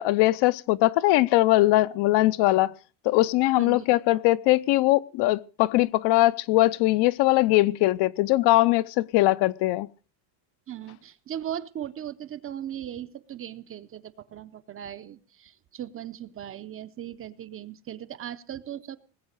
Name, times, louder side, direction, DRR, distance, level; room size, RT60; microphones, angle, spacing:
voice 1, 0.0-2.7 3.0-9.9, left 18 dB, 55° left, 0.7 m, -21 dB
voice 2, 3.6-4.2 10.7-19.0, right 10 dB, 25° right, 0.6 m, -38 dB
20.0 x 8.0 x 6.5 m
cardioid pair, 150°, 50 cm